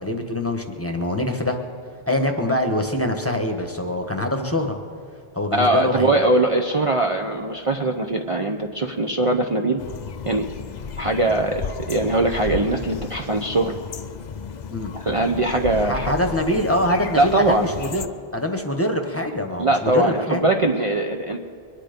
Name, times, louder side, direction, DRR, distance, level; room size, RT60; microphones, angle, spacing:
voice 1, 0.0-1.6 2.1-4.8 5.3-6.3 14.7-14.9 15.8-18.1 18.3-20.5, left 1 dB, 15° left, 4 dB, 1.2 m, -24 dB
voice 2, 5.5-9.8 10.3-10.5 11.0-11.6 11.9-13.7 14.9-16.1 17.1-17.7 19.6-21.4, right 2 dB, 35° right, 2 dB, 0.7 m, -21 dB
sound 1, 9.8-18.1, left 7 dB, 50° left, 0.7 m, -34 dB
23.0 x 10.0 x 5.2 m, 2.4 s
omnidirectional pair, 1.0 m